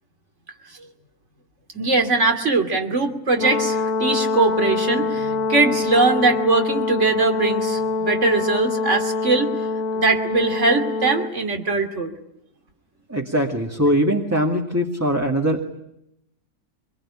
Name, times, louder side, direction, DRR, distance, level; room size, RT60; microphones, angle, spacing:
voice 1, 1.7-9.5 9.9-12.1, right 3 dB, 50° right, 6 dB, 3.0 m, -21 dB
Brass instrument, 3.4-11.3, left 4 dB, 65° left, 1.7 m, -24 dB
voice 2, 13.1-15.6, equal, 10° right, 0 dB, 2.1 m, -21 dB
25.5 x 22.0 x 10.0 m, 0.80 s
omnidirectional pair, 1.6 m